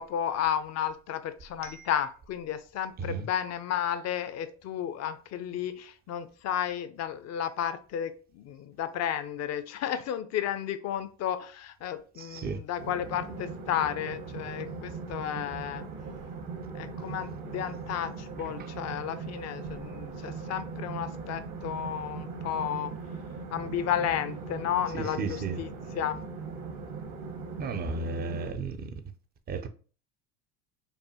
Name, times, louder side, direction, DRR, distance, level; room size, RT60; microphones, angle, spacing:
voice 1, 0.0-15.8 16.7-22.9 23.5-26.2, left 10 dB, 35° left, 0.5 m, -33 dB
voice 2, 12.2-12.6 24.9-25.6 27.6-28.9 29.5-29.7, right 4 dB, 20° right, 0.4 m, -34 dB
sound 1, 12.8-28.5, right 4 dB, 65° right, 1.2 m, -39 dB
5.4 x 2.1 x 2.8 m
hypercardioid pair, 85°, 48 cm